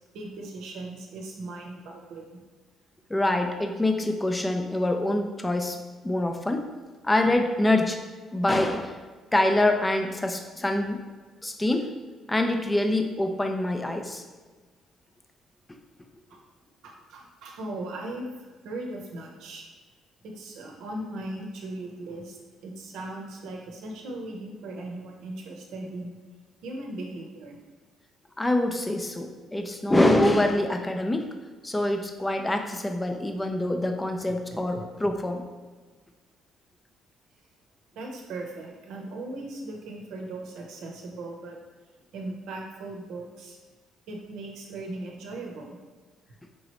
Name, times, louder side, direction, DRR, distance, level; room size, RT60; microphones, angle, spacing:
voice 1, 0.1-2.4 16.3-16.4 16.8-19.6 20.2-26.1 26.6-27.6 34.5-34.9 38.0-41.6 42.1-43.6 44.1-45.8, right 2 dB, 75° right, 1 dB, 0.8 m, -38 dB
voice 2, 3.1-5.8 6.0-6.7 7.0-8.0 8.3-9.0 9.3-11.0 11.4-11.9 12.3-14.2 28.4-31.3 31.6-35.4, left 1 dB, 10° left, 5 dB, 0.4 m, -25 dB
4.8 x 3.0 x 2.9 m, 1.4 s
cardioid pair, 115°, 0 cm